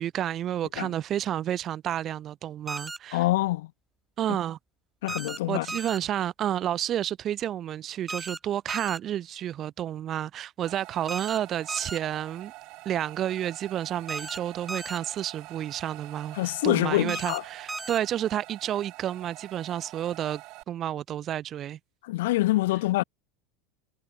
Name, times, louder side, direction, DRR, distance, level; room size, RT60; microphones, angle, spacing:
voice 1, 0.0-3.2 4.2-4.6 5.5-12.5 12.9-20.4 20.7-21.8, right 11 dB, 25° right, 1.8 m, -30 dB
sound 1, 2.7-3.0 5.1-5.4 5.7-6.0 8.1-8.4 8.7-9.0 11.1-11.4 11.7-12.0 14.1-14.4 14.7-15.0 17.1-17.4 17.7-18.0, right 3 dB, 10° right, 1.5 m, -35 dB
voice 2, 3.1-3.7 5.0-5.7 16.3-17.4 22.0-23.0, left 18 dB, 75° left, 2.0 m, -25 dB
sound 2, 10.6-20.6, right 22 dB, 45° right, 5.9 m, -46 dB
supercardioid pair, 165°, 0 cm